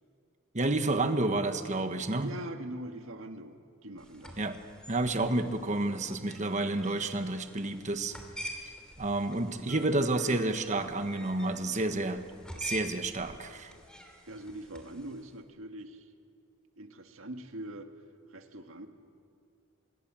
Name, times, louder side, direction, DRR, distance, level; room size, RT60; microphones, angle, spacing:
voice 1, 0.5-2.3 4.4-4.6 4.9-8.1 9.0-12.2 12.6-13.7, right 2 dB, 35° right, 8 dB, 1.3 m, -30 dB
voice 2, 2.2-4.4 14.3-16.1 16.8-17.9 18.3-18.9, right 1 dB, 75° right, 6 dB, 1.7 m, -42 dB
sound 1, 4.0-15.3, equal, 5° left, 2.8 m, -47 dB
26.5 x 20.5 x 7.5 m, 2.3 s
head